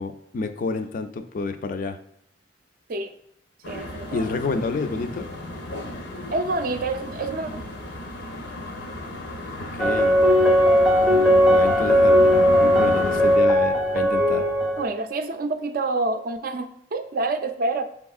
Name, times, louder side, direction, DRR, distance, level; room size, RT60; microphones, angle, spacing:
voice 1, 0.0-2.0 4.1-5.3 9.6-10.2 11.1-14.5, left 3 dB, 50° left, 8 dB, 0.4 m, -29 dB
sound 1, 3.6-13.4, left 1 dB, 85° left, 0.8 m, -34 dB
voice 2, 3.7-4.2 6.3-7.5 14.8-17.8, right 2 dB, 55° right, 7 dB, 0.4 m, -27 dB
sound 2, 9.8-14.9, equal, 5° right, 0.5 m, -18 dB
5.5 x 3.5 x 2.4 m, 0.69 s
head